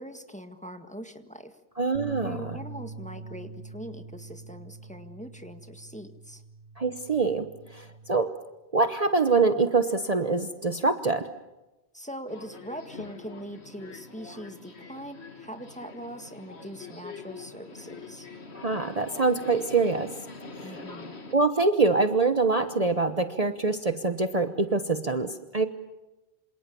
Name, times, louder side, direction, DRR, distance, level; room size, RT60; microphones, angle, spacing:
voice 1, 0.0-1.6 2.2-6.4 11.9-18.3 20.6-21.2, equal, 5° left, 7 dB, 1.7 m, -42 dB
voice 2, 1.8-2.6 6.8-8.4 8.7-11.3 18.5-20.1 20.6-20.8 21.3-25.7, right 3 dB, 35° right, 9 dB, 1.1 m, -25 dB
sound 1, 1.9-8.2, right 4 dB, 80° right, 2.1 m, -43 dB
Subway metro underground, 12.3-21.3, left 4 dB, 75° left, 2.3 m, -44 dB
27.0 x 27.0 x 7.1 m, 1.0 s
omnidirectional pair, 1.1 m